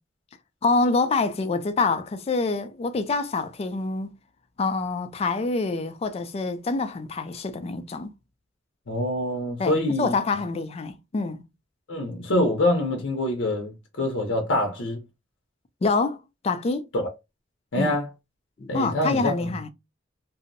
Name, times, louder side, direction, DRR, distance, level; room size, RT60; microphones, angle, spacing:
voice 1, 0.6-4.1 4.6-8.1 9.6-11.4 15.8-16.9 17.8-18.0 18.6-19.7, left 3 dB, 35° left, 0.3 m, -26 dB
voice 2, 8.9-10.1 11.9-15.0 16.9-17.1 17.7-18.1 18.7-19.5, left 1 dB, 70° left, 0.6 m, -25 dB
2.6 x 2.0 x 2.5 m
head